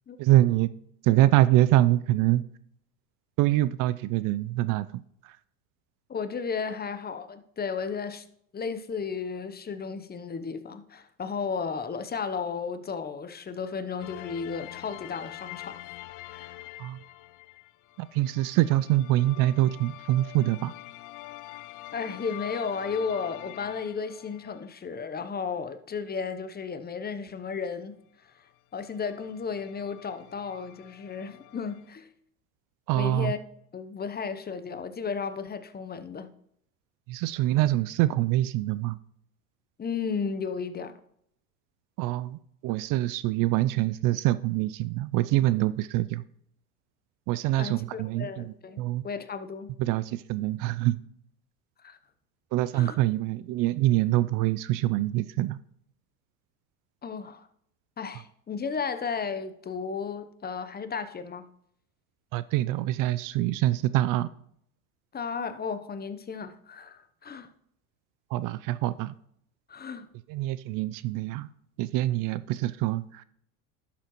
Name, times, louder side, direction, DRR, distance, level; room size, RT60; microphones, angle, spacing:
voice 1, 0.2-0.7 1.0-2.4 3.4-5.3 16.8-17.0 18.0-20.7 32.9-33.3 37.1-39.0 42.0-46.2 47.3-49.0 49.8-51.0 52.5-55.6 62.3-64.3 68.3-69.1 70.3-71.5 71.8-73.2, right 15 dB, 50° right, 0.5 m, -25 dB
voice 2, 6.1-8.2 8.5-15.8 16.3-16.5 21.9-27.9 28.4-28.5 28.7-32.1 32.9-33.4 33.7-36.3 39.8-41.0 47.6-49.7 51.8-52.0 52.7-53.0 57.0-57.5 58.0-61.5 65.1-67.5 69.7-70.1, left 5 dB, 25° left, 0.8 m, -34 dB
sound 1, 14.0-24.7 28.5-28.6 28.8-31.9, left 18 dB, 50° left, 0.5 m, -45 dB
11.0 x 7.1 x 3.1 m
hypercardioid pair, 85°, 42 cm